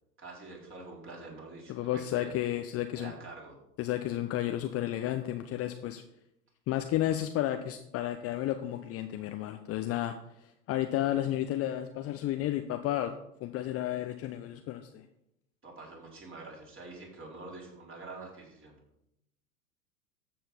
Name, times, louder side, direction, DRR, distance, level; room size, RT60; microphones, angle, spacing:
voice 1, 0.2-2.3 2.9-3.6 15.6-18.8, right 3 dB, 25° right, -2 dB, 4.2 m, -46 dB
voice 2, 1.7-3.1 3.8-6.0 6.7-10.2 10.7-13.1 13.4-15.0, left 13 dB, 30° left, 7 dB, 0.7 m, -32 dB
13.5 x 7.6 x 4.3 m, 0.81 s
figure-of-eight pair, 85°, 49 cm